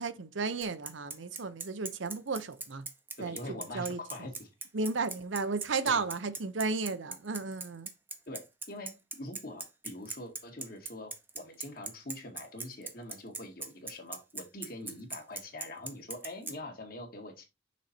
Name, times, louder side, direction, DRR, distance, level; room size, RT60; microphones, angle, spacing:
voice 1, 0.0-2.9 3.2-4.0 4.7-7.9, right 4 dB, 75° right, 0.7 m, -34 dB
Bicycle, 0.6-16.5, right 4 dB, 10° right, 0.7 m, -40 dB
voice 2, 3.2-4.5 5.9-6.0 8.3-17.4, left 1 dB, 50° left, 2.0 m, -44 dB
6.2 x 4.2 x 4.2 m
head